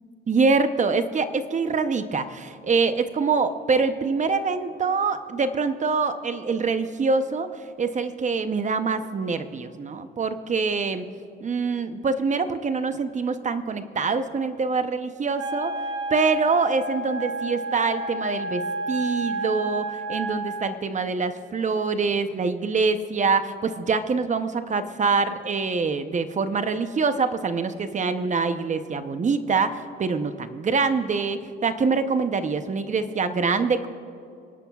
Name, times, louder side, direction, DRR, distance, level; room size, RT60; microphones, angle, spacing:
voice 1, 0.3-7.5 7.8-11.1 11.4-15.7 16.1-33.9, right 4 dB, 40° right, 10 dB, 0.8 m, -25 dB
Wind instrument woodwind instrument, 15.4-20.7, right 1 dB, 80° right, 1.2 m, -31 dB
28.5 x 11.0 x 2.4 m, 2.5 s
cardioid pair, 90°, 20 cm